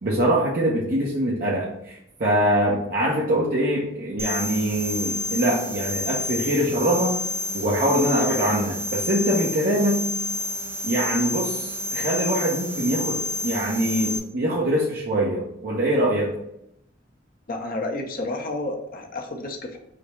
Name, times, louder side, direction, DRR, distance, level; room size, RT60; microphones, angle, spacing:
voice 1, 0.0-7.1 7.5-10.1 10.8-16.3, right 1 dB, 55° right, -5 dB, 0.7 m, -23 dB
sound 1, 4.2-14.2, left 2 dB, 10° right, 0.4 m, -29 dB
voice 2, 17.5-19.8, left 2 dB, 50° left, 3 dB, 0.6 m, -30 dB
5.0 x 2.0 x 4.3 m, 0.78 s
head